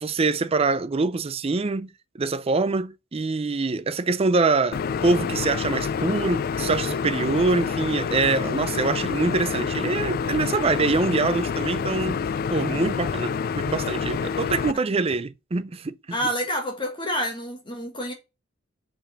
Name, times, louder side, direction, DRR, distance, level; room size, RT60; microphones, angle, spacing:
voice 1, 0.0-1.9 2.1-12.2 12.5-16.2, right 3 dB, 30° right, 0.4 m, -24 dB
sound 1, 4.7-14.7, left 6 dB, 45° left, 0.3 m, -27 dB
voice 2, 16.1-18.1, equal, 25° left, 1.5 m, -28 dB
5.3 x 5.1 x 5.7 m
head